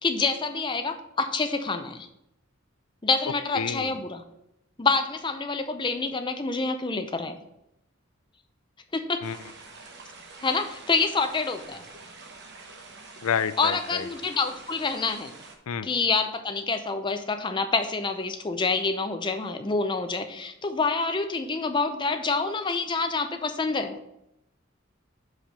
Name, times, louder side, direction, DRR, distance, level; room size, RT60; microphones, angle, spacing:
voice 1, 0.0-2.1 3.0-4.2 4.8-7.4 8.9-9.2 10.4-11.8 13.6-15.3 15.8-24.0, left 4 dB, 20° left, 7 dB, 0.5 m, -27 dB
voice 2, 3.5-3.9 9.2-9.4 13.2-14.1 15.7-15.9, left 7 dB, 90° left, 13 dB, 0.4 m, -29 dB
sound 1, 9.2-15.5, right 3 dB, 55° right, 1.0 m, -46 dB
5.8 x 4.8 x 5.3 m, 0.81 s
head